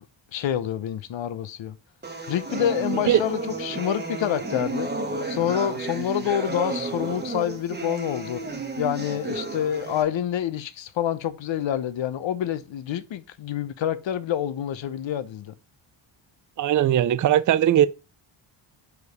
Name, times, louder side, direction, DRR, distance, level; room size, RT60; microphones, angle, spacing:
voice 1, 0.3-1.8 2.3-4.9 5.3-8.4 8.8-15.5, left 10 dB, 65° left, 0.8 m, -27 dB
sound 1, 2.0-10.0, right 2 dB, 20° right, 1.2 m, -32 dB
voice 2, 16.6-17.9, right 11 dB, 40° right, 0.4 m, -19 dB
4.9 x 4.9 x 5.3 m
cardioid pair, 110°, 49 cm